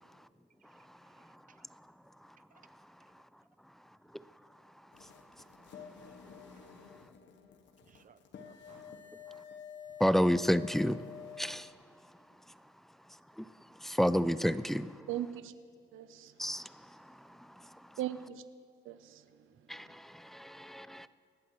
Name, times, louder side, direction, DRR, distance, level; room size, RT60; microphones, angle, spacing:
voice 1, 1.1-1.7 2.5-2.6 6.1-6.2 7.8-9.4, right 7 dB, 40° right, 0.7 m, -65 dB
sound 1, 4.9-11.7, left 7 dB, 65° left, 1.1 m, -50 dB
voice 2, 10.0-11.0 11.4-11.7 13.4-13.5 13.8-14.9 16.4-16.7 17.0-17.7 19.7-21.1, equal, ahead, 0.4 m, -30 dB
voice 3, 15.1-15.5 15.9-16.3 18.0-18.4 18.8-19.5, right 12 dB, 85° right, 0.7 m, -39 dB
25.5 x 11.5 x 3.1 m
cardioid pair, 90°, 20 cm